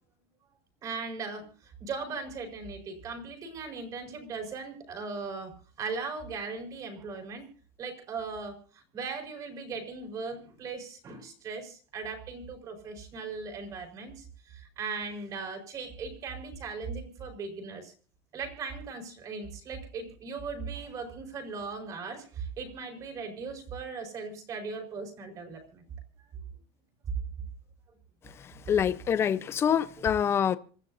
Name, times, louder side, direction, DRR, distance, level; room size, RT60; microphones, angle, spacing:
voice 1, 0.8-1.5 1.8-5.5 5.8-7.4 7.8-17.9 18.3-25.9 28.5-28.6, right 4 dB, 30° right, 4.8 m, -38 dB
voice 2, 28.3-30.6, left 8 dB, 20° left, 0.7 m, -26 dB
26.5 x 14.0 x 2.7 m
cardioid pair, 180°, 13 cm